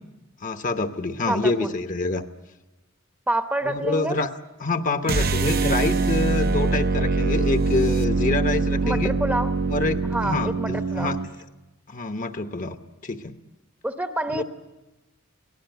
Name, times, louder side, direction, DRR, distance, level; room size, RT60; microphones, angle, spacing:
voice 1, 0.4-2.2 3.6-4.3 4.6-9.2 9.7-11.2 11.9-12.8 13.0-13.4 14.3-14.4, left 3 dB, 40° left, 8 dB, 0.9 m, -26 dB
voice 2, 1.3-1.7 3.3-4.2 8.8-9.6 10.0-11.1 13.8-14.4, right 1 dB, 10° right, 7 dB, 0.8 m, -27 dB
sound 1, 5.0-11.3, right 3 dB, 50° right, 0.7 m, -23 dB
22.5 x 18.0 x 8.0 m, 1.0 s
head